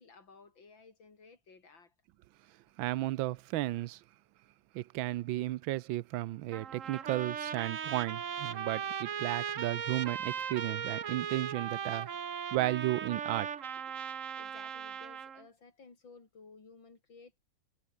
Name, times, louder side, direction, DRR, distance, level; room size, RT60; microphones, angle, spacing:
voice 1, 0.0-1.9 14.4-17.4, left 4 dB, 80° left, 4.5 m, -56 dB
voice 2, 2.8-4.0 4.7-12.1 12.5-13.5, right 16 dB, 90° right, 1.4 m, -34 dB
Trumpet, 6.5-15.4, right 7 dB, 45° right, 1.4 m, -38 dB
omnidirectional pair, 2.1 m